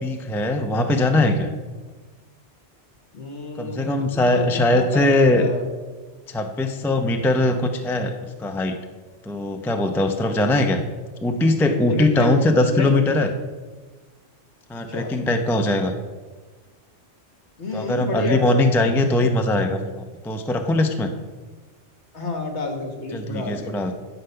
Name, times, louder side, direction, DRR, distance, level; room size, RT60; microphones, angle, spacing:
voice 1, 0.0-1.5 3.6-5.5 6.3-8.8 9.3-10.8 11.2-13.3 14.7-15.9 17.7-21.1 23.1-23.9, left 2 dB, 5° left, 5 dB, 0.4 m, -21 dB
voice 2, 3.1-5.7 11.7-12.3 12.7-12.9 14.9-15.2 17.6-19.2 22.1-23.7, left 3 dB, 70° left, 3 dB, 1.8 m, -30 dB
11.5 x 5.2 x 5.7 m, 1.3 s
omnidirectional pair, 1.2 m